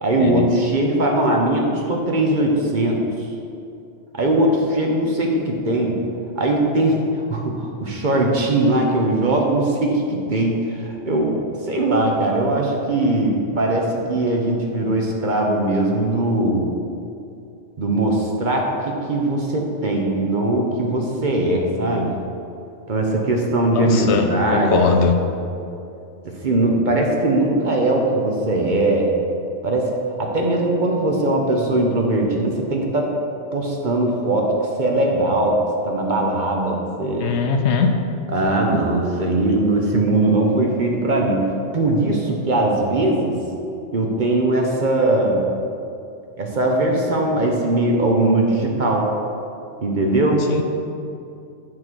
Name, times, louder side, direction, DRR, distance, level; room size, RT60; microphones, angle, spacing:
voice 1, 0.0-3.3 4.1-6.1 6.4-16.8 17.8-22.2 22.9-25.1 26.2-29.1 29.6-29.9 30.2-33.2 33.5-37.4 38.3-41.5 41.7-43.4 43.9-45.5 46.4-49.2 49.8-50.5, right 1 dB, 45° right, 0 dB, 0.9 m, -20 dB
voice 2, 23.7-25.2 37.2-37.9 50.5-50.6, left 5 dB, 70° left, 5 dB, 0.8 m, -20 dB
7.7 x 3.9 x 6.0 m, 2.6 s
omnidirectional pair, 1.3 m